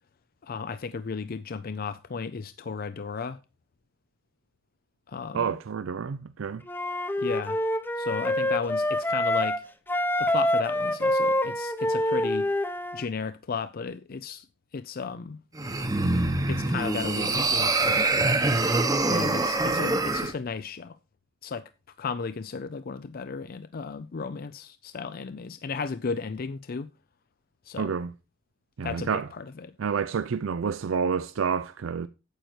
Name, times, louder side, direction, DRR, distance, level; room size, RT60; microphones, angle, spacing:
voice 1, 0.4-3.4 5.1-5.6 7.2-7.6 8.0-9.6 10.2-12.5 12.9-14.5 14.7-15.4 16.5-18.4 19.1-21.0 21.4-21.7 22.0-26.9 27.6-27.9 28.8-29.7, left 5 dB, 50° left, 0.5 m, -34 dB
voice 2, 5.3-6.6 27.8-28.1 28.8-29.3 29.8-32.1, right 6 dB, 75° right, 0.4 m, -29 dB
Wind instrument woodwind instrument, 6.7-9.6 9.9-13.0, left 1 dB, 10° left, 0.8 m, -26 dB
sound 1, 15.5-20.3, right 2 dB, 20° right, 1.0 m, -25 dB
9.2 x 8.0 x 4.4 m
head